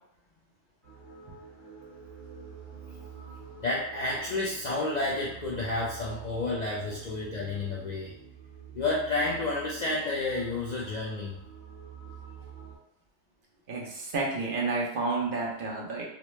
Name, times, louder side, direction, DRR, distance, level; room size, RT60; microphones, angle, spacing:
sound 1, 0.8-12.8, right 6 dB, 25° right, 1.3 m, -47 dB
voice 1, 3.6-8.1 8.7-11.4, left 2 dB, 80° left, -5 dB, 0.3 m, -30 dB
voice 2, 13.7-16.0, right 3 dB, 50° right, -3 dB, 0.7 m, -30 dB
3.0 x 2.0 x 3.0 m, 0.77 s
omnidirectional pair, 1.3 m